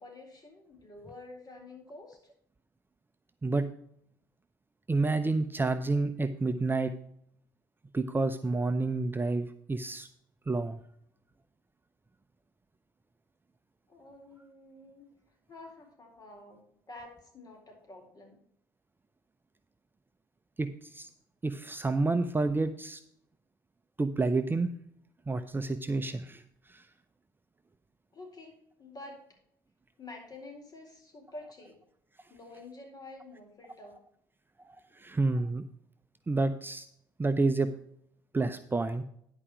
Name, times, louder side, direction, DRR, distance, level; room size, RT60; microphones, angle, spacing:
voice 1, 0.0-2.2 13.9-15.1 15.5-18.4 28.1-29.2 30.0-31.8 32.3-34.0, left 2 dB, 35° left, 2 dB, 4.4 m, -49 dB
voice 2, 4.9-6.9 7.9-10.1 10.5-10.8 20.6-21.1 21.4-23.0 24.0-24.7 25.3-26.4 26.7-26.8 34.6-35.6 36.3-36.9 37.2-37.7 38.3-39.0, right 3 dB, 20° right, 9 dB, 0.7 m, -29 dB
11.0 x 5.0 x 6.0 m, 0.69 s
hypercardioid pair, 55°, 11 cm